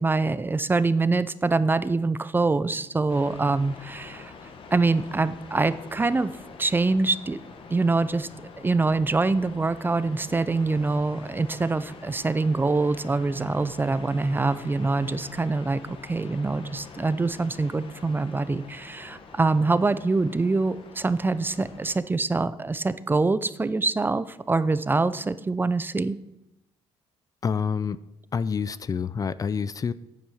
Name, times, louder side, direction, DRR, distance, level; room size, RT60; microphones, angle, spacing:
voice 1, 0.0-4.3 4.7-6.3 6.6-7.4 7.7-8.3 8.6-26.2, right 3 dB, 20° right, 15 dB, 0.5 m, -25 dB
sound 1, 3.1-22.0, left 4 dB, 60° left, 1.6 m, -45 dB
voice 2, 27.4-28.0 28.3-29.9, left 6 dB, 35° left, 17 dB, 0.4 m, -27 dB
9.0 x 8.6 x 6.3 m, 0.93 s
cardioid pair, 100°, 11 cm